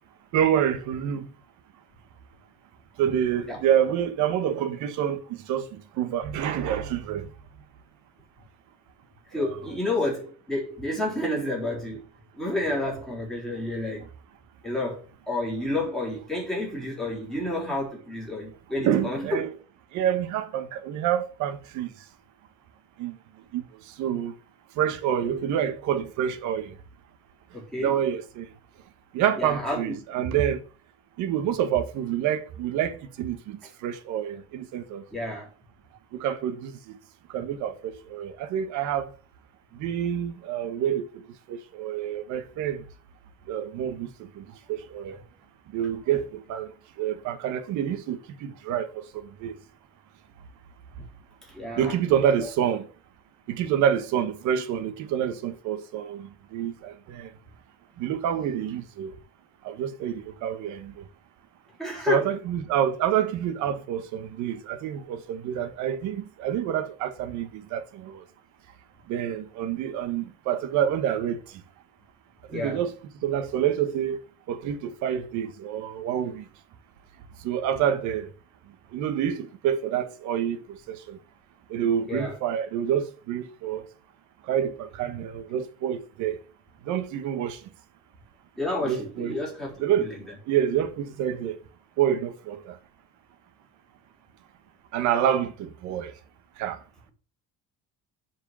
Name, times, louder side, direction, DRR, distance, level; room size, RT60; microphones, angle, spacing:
voice 1, 0.3-1.3 3.0-7.3 9.3-9.5 18.8-19.5 19.9-21.9 23.0-23.1 23.5-23.6 24.0-24.3 24.8-26.7 27.8-28.5 29.1-30.6 31.2-35.0 36.1-36.7 37.3-39.1 39.7-41.1 41.5-42.8 43.5-44.1 44.4-45.2 45.7-46.7 47.0-48.9 49.4-49.5 51.8-52.9 53.5-57.3 58.0-59.1 59.6-60.9 62.1-68.2 69.1-71.4 72.5-72.9 73.2-74.2 74.5-76.4 77.4-78.3 78.9-81.2 81.7-83.8 84.5-86.4 86.9-87.6 88.8-89.4 89.8-90.1 90.5-91.5 92.0-92.8 94.9-96.1 96.6-96.8, right 9 dB, 65° right, 1.4 m, -27 dB
voice 2, 9.3-12.1 12.3-14.1 14.6-19.4 27.5-27.9 29.4-30.2 35.1-35.5 51.0-51.1 51.5-51.9 52.4-52.5 61.8-62.3 72.5-72.8 82.1-82.4 88.6-90.1, left 1 dB, ahead, 3.8 m, -30 dB
7.7 x 4.9 x 6.8 m
cardioid pair, 175°, 31 cm